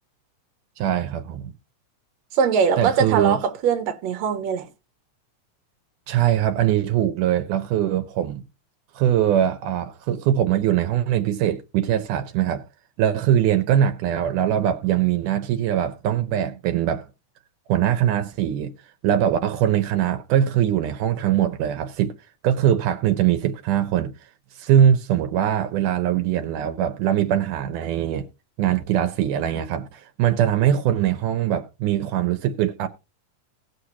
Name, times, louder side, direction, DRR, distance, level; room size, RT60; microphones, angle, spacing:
voice 1, 0.8-1.5 2.8-3.4 6.1-8.4 9.0-12.6 13.0-17.1 17.7-18.7 19.0-22.1 22.4-24.1 24.6-28.3 28.6-32.9, right 10 dB, 80° right, 2.3 m, -22 dB
voice 2, 2.3-4.7, right 6 dB, 65° right, 2.2 m, -22 dB
18.5 x 6.6 x 2.8 m
omnidirectional pair, 3.6 m